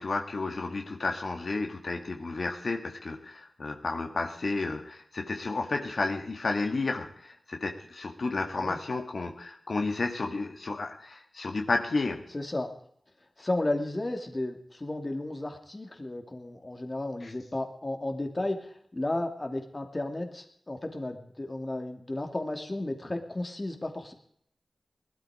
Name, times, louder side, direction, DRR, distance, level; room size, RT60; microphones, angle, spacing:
voice 1, 0.0-12.2 17.2-17.3, left 3 dB, 65° left, 3 dB, 2.0 m, -32 dB
voice 2, 12.3-12.7 13.4-24.1, left 2 dB, 30° left, 5 dB, 2.5 m, -33 dB
19.5 x 13.0 x 5.0 m, 0.66 s
wide cardioid pair, 70°, 0 cm